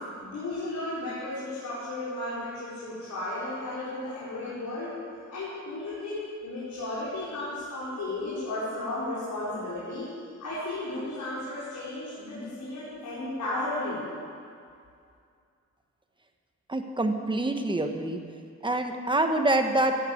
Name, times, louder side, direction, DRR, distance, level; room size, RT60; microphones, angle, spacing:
voice 1, 0.0-4.9 5.3-10.1 10.4-14.0, left 2 dB, 80° left, -10 dB, 5.0 m, -34 dB
voice 2, 16.7-18.2 18.6-19.9, right 2 dB, 15° right, 5 dB, 1.2 m, -26 dB
15.5 x 11.0 x 8.6 m, 2.3 s
wide cardioid pair, 155°, 29 cm